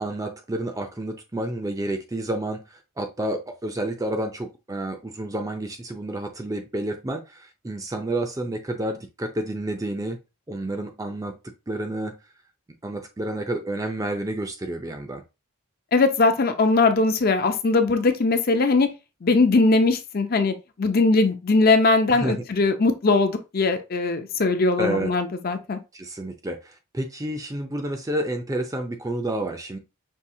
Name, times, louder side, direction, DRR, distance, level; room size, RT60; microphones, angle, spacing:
voice 1, 0.0-10.2 10.5-11.4 11.7-12.1 12.8-15.2 22.1-22.4 24.8-25.1 25.9-29.8, right 1 dB, 15° right, 0.4 m, -30 dB
voice 2, 15.9-18.9 19.2-25.8, left 3 dB, 40° left, 0.5 m, -20 dB
5.5 x 2.7 x 2.7 m
head